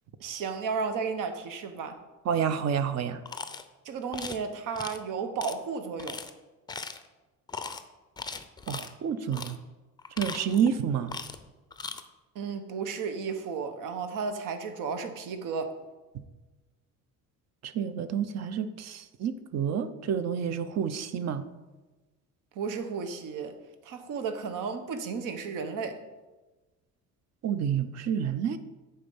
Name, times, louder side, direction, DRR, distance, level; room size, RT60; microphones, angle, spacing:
voice 1, 0.2-2.0 3.8-6.2 12.3-15.7 22.5-23.5 23.8-26.0, right 5 dB, 70° right, 7 dB, 1.1 m, -33 dB
voice 2, 2.3-3.2 8.7-9.6 10.2-11.1 17.6-21.4 27.4-28.6, right 8 dB, 50° right, 12 dB, 0.7 m, -29 dB
sound 1, 3.3-3.6 4.1-4.4 4.8-5.0 5.4-5.5 6.0-6.3 6.7-7.1 7.5-7.8 8.2-8.9 9.3-9.6 10.0-10.7 11.1-11.4 11.7-12.0, left 4 dB, 15° left, 0.5 m, -38 dB
8.8 x 4.4 x 7.2 m, 1.2 s
cardioid pair, 135°, 33 cm